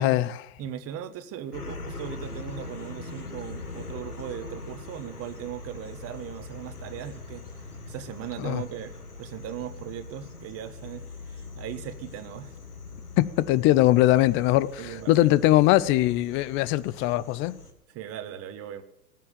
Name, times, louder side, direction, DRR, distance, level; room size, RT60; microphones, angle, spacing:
voice 1, 0.0-0.4 8.4-8.6 13.2-17.6, left 15 dB, 30° left, 0.5 m, -21 dB
voice 2, 0.6-12.5 14.8-15.3 17.9-18.8, right 10 dB, 30° right, 1.6 m, -38 dB
sound 1, 1.5-17.7, left 3 dB, 90° left, 1.9 m, -42 dB
18.5 x 7.5 x 8.8 m
hypercardioid pair, 100°, 44 cm